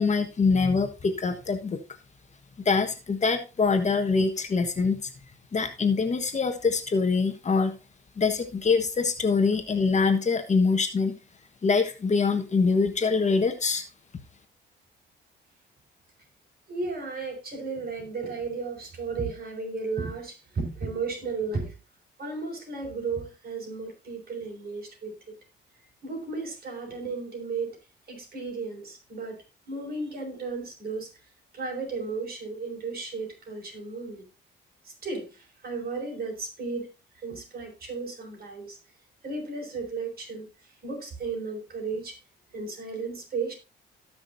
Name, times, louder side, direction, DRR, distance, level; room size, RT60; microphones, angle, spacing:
voice 1, 0.0-1.8 2.6-5.1 5.5-7.7 8.2-11.1 11.6-13.8, left 4 dB, 35° left, 8 dB, 1.4 m, -24 dB
voice 2, 16.7-21.8 22.2-25.1 26.0-27.8 28.1-29.4 29.7-31.1 31.5-34.2 34.8-38.8 39.2-42.2 42.5-43.5, right 4 dB, 50° right, 1 dB, 5.9 m, -34 dB
18.0 x 6.1 x 2.7 m, 0.29 s
cardioid pair, 90°, 20 cm